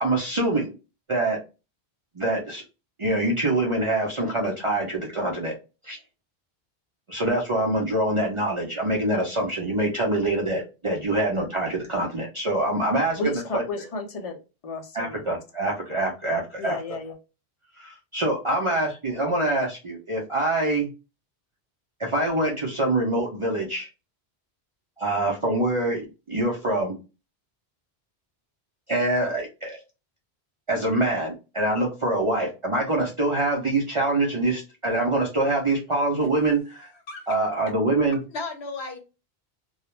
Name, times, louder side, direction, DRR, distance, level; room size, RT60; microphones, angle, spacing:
voice 1, 0.0-0.7 1.1-1.4 2.2-2.6 3.0-5.5 5.8-6.0 7.1-13.2 13.5-13.6 14.9-16.8 17.8-20.9 22.0-23.9 25.0-27.0 28.9-29.8 30.7-36.9 37.3-38.2, right 2 dB, 45° right, 0.4 m, -25 dB
voice 2, 13.2-15.2 15.6-15.7 16.6-17.2, left 2 dB, 45° left, 0.5 m, -32 dB
voice 3, 36.7-37.2 38.3-39.0, left 3 dB, 80° left, 1.0 m, -35 dB
2.3 x 2.0 x 2.9 m
omnidirectional pair, 1.1 m